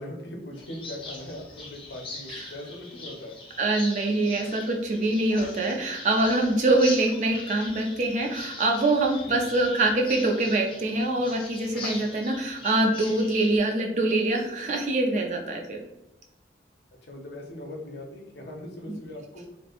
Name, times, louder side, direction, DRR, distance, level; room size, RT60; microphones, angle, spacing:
voice 1, 0.0-3.4 9.2-9.3 17.1-19.4, left 1 dB, 70° left, 1 dB, 0.6 m, -40 dB
sound 1, 0.5-13.6, left 3 dB, 30° left, 0.4 m, -41 dB
voice 2, 3.6-15.8 18.9-19.0, right 2 dB, 40° right, 1 dB, 0.4 m, -24 dB
3.0 x 2.1 x 2.4 m, 0.91 s
head